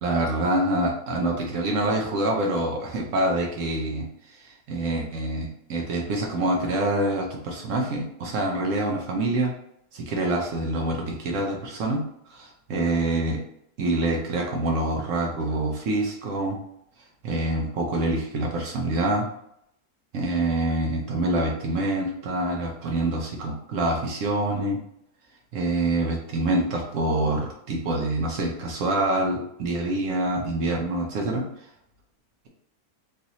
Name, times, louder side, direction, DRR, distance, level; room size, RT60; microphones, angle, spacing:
voice 1, 0.0-9.5 9.9-13.4 13.8-16.6 17.2-19.3 20.1-24.8 25.5-31.7, right 2 dB, 65° right, 0 dB, 0.9 m, -26 dB
3.1 x 2.6 x 2.8 m, 0.75 s
omnidirectional pair, 1.6 m